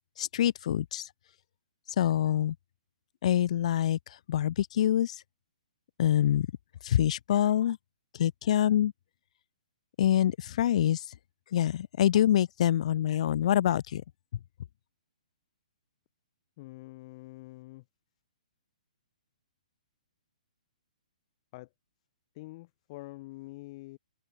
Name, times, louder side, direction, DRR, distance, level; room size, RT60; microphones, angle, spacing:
voice 1, 0.2-1.1 2.0-2.6 3.2-5.2 6.0-6.5 6.8-7.8 8.1-8.9 10.0-11.1 11.5-14.0, left 11 dB, 55° left, 0.6 m, -25 dB
voice 2, 16.6-17.8 21.5-21.7 22.3-24.0, left 20 dB, 40° left, 4.5 m, -46 dB
hypercardioid pair, 135°, 4 cm